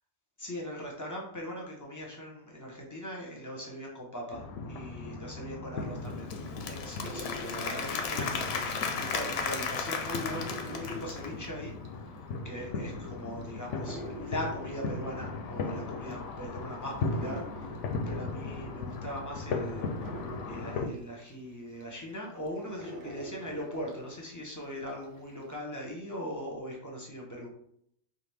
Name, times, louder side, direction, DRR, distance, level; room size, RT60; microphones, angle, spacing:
voice 1, 0.4-6.3 6.6-12.1 12.4-17.8 18.1-20.2 20.5-27.5, equal, 15° left, -1 dB, 0.8 m, -40 dB
sound 1, 4.3-20.8, left 3 dB, 85° left, 0.9 m, -38 dB
Applause / Crowd, 6.0-11.4, left 5 dB, 65° left, 0.8 m, -35 dB
sound 2, 6.9-9.2 9.5-24.6 25.0-25.6, right 2 dB, 55° right, 0.6 m, -47 dB
4.1 x 2.6 x 3.4 m, 0.70 s
omnidirectional pair, 1.2 m